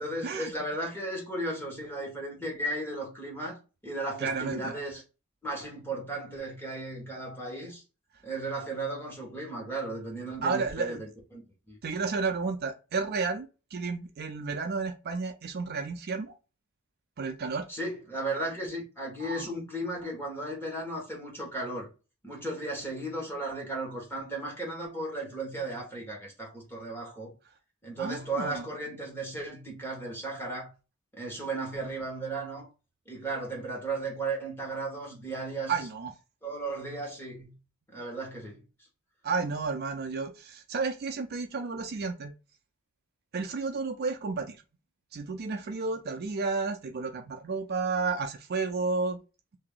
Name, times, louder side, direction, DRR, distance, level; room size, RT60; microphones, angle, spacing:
voice 1, 0.0-3.6 3.8-5.0 5.4-7.8 8.2-11.0 11.3-11.4 11.7-11.8 17.7-21.9 22.2-27.3 27.8-30.7 31.1-32.7 33.0-35.7 36.4-37.5 37.9-38.6, right 2 dB, 10° left, 1.4 m, -35 dB
voice 2, 4.2-4.7 10.4-11.0 11.8-16.3 17.2-17.7 19.2-19.5 28.0-28.6 35.7-36.1 39.2-42.3 43.3-44.6 45.1-49.2, right 4 dB, 50° right, 0.5 m, -32 dB
2.8 x 2.7 x 3.7 m
head